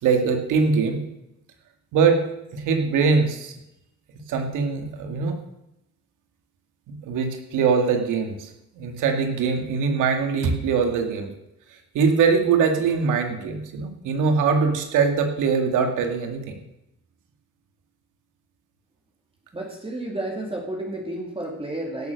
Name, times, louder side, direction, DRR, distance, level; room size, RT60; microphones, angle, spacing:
voice 1, 0.0-1.0 1.9-2.2 2.5-3.5 4.3-5.4 6.9-8.5 8.8-11.3 11.9-16.5, right 5 dB, 85° right, 4 dB, 2.2 m, -22 dB
voice 2, 19.5-22.1, right 1 dB, 20° right, -1 dB, 2.4 m, -31 dB
16.0 x 7.0 x 6.5 m, 0.88 s
cardioid pair, 90°, 30 cm